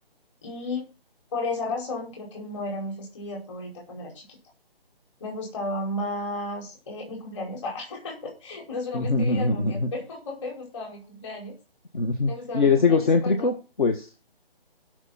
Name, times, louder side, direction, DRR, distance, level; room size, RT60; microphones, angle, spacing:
voice 1, 0.4-0.9 1.3-4.4 5.2-11.5 12.3-13.5, left 2 dB, 30° left, 0 dB, 5.2 m, -34 dB
voice 2, 8.9-9.9 11.9-14.1, left 4 dB, 55° left, 6 dB, 1.8 m, -23 dB
17.5 x 6.4 x 4.2 m, 0.32 s
figure-of-eight pair, 150°, 30 cm